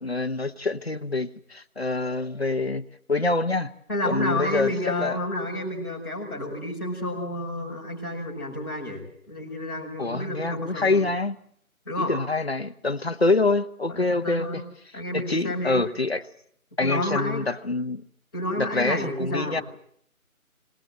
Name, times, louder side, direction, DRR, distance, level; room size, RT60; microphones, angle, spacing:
voice 1, 0.0-3.7 4.0-4.7 5.0-5.2 10.0-11.4 12.1-14.6 15.1-16.2 16.8-18.0 18.6-19.6, left 3 dB, 45° left, 8 dB, 1.0 m, -26 dB
voice 2, 3.9-11.0 11.9-12.1 13.9-14.6 14.9-15.8 16.8-17.4 18.3-19.6, left 1 dB, 15° left, -8 dB, 5.4 m, -30 dB
25.5 x 19.0 x 7.7 m, 0.66 s
figure-of-eight pair, 180°, 43 cm